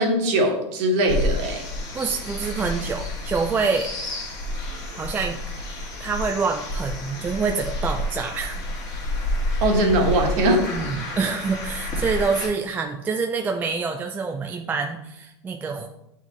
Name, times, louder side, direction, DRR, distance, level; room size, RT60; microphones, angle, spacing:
voice 1, 0.0-1.6 9.6-10.7, right 1 dB, 45° right, 2 dB, 1.4 m, -21 dB
sound 1, 1.1-12.5, left 1 dB, 25° left, 1.6 m, -29 dB
voice 2, 1.9-3.9 4.9-5.4 6.0-8.6 10.7-15.9, right 5 dB, 10° right, 3 dB, 0.3 m, -26 dB
8.0 x 3.9 x 3.1 m, 0.83 s
supercardioid pair, 140°, 15 cm